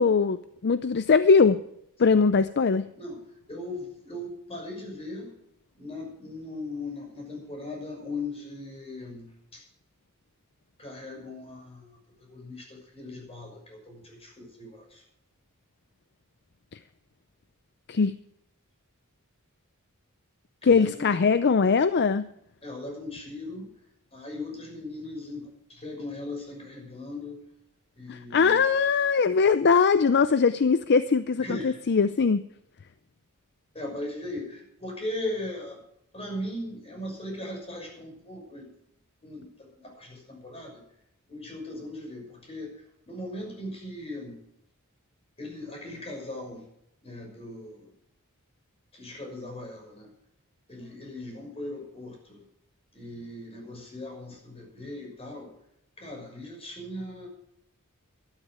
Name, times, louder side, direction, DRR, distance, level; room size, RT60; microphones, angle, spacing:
voice 1, 0.0-1.6 2.0-2.9 17.9-18.1 20.6-22.3 28.1-32.4, left 5 dB, 50° left, 13 dB, 0.5 m, -21 dB
voice 2, 3.5-5.3 5.7-9.6 10.8-15.0 20.6-21.1 22.6-23.7 24.1-27.4 28.0-28.6 31.4-31.8 33.7-35.8 36.1-38.7 39.2-40.8 41.3-44.4 45.4-46.6 47.0-47.9 48.9-50.1 50.7-52.4 52.9-55.5 56.0-57.3, left 1 dB, 30° left, 1 dB, 6.1 m, -38 dB
13.0 x 12.5 x 4.9 m, 0.76 s
head